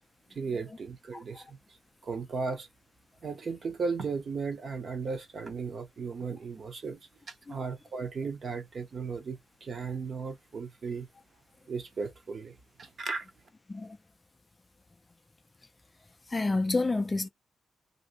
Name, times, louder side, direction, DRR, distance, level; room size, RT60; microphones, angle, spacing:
voice 1, 0.3-1.6 2.0-2.7 3.2-7.0 7.3-11.1 11.7-12.5 12.8-13.3, right 4 dB, 40° right, 0.7 m, -35 dB
voice 2, 1.1-1.4 7.5-7.6 13.7-14.0 16.3-17.3, left 3 dB, 20° left, 0.3 m, -29 dB
3.0 x 2.6 x 2.8 m
wide cardioid pair, 160°, 0 cm